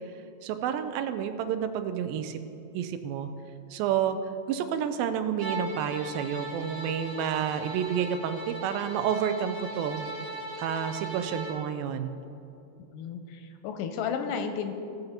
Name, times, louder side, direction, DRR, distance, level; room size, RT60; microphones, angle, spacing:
voice 1, 0.4-2.4 2.7-3.3 3.7-4.2 4.5-10.1 10.6-12.1, right 8 dB, 85° right, 9 dB, 2.4 m, -30 dB
Bowed string instrument, 5.4-11.6, right 1 dB, 45° right, 3.0 m, -38 dB
voice 2, 12.9-14.7, left 6 dB, 80° left, 6 dB, 2.1 m, -33 dB
17.0 x 6.7 x 4.3 m, 2.7 s
omnidirectional pair, 4.1 m